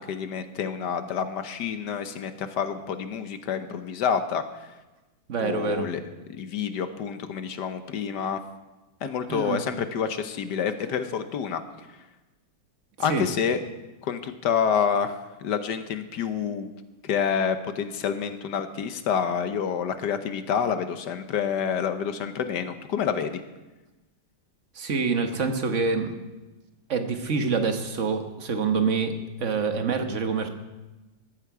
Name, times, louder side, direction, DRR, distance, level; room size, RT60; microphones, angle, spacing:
voice 1, 0.1-4.4 5.4-6.0 6.4-8.4 9.0-11.6 13.0-13.6 14.0-16.7 17.0-23.4, left 7 dB, 75° left, 9 dB, 1.5 m, -28 dB
voice 2, 5.3-5.9 9.3-9.6 13.0-13.3 24.7-26.2 26.9-30.5, right 5 dB, 45° right, 6 dB, 1.5 m, -26 dB
15.0 x 14.0 x 4.8 m, 1.1 s
omnidirectional pair, 1.9 m